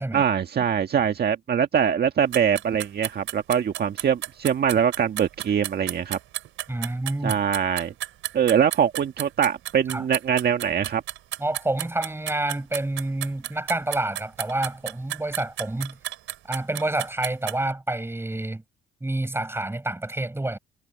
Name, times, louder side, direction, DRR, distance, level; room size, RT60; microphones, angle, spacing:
voice 1, 0.1-6.2 7.2-7.9 8.3-11.0, right 8 dB, 55° right, 1.6 m, -23 dB
sound 1, 2.3-17.7, right 14 dB, 85° right, 4.7 m, -33 dB
voice 2, 6.7-7.4 9.9-10.0 11.4-16.0 16.5-18.6 19.0-20.6, right 2 dB, 10° right, 5.2 m, -28 dB
cardioid pair, 90°, 20 cm